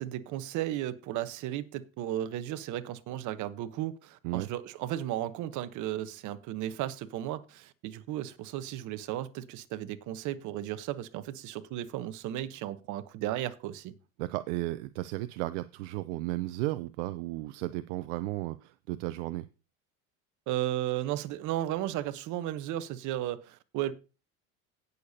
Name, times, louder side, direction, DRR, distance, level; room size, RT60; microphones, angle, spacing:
voice 1, 0.0-13.9 20.5-23.9, right 13 dB, 55° right, 1.1 m, -34 dB
voice 2, 14.2-19.5, right 17 dB, 75° right, 0.6 m, -34 dB
17.5 x 6.7 x 2.8 m
supercardioid pair, 100°, 35 cm